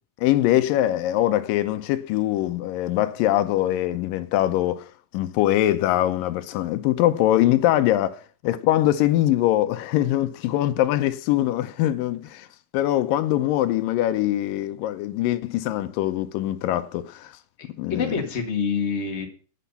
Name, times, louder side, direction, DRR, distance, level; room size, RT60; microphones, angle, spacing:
voice 1, 0.2-4.9 5.1-12.5 12.7-17.3 17.8-18.1, left 13 dB, 85° left, 2.3 m, -22 dB
voice 2, 17.6-19.3, left 5 dB, 25° left, 1.7 m, -27 dB
10.0 x 9.3 x 5.7 m
omnidirectional pair, 4.0 m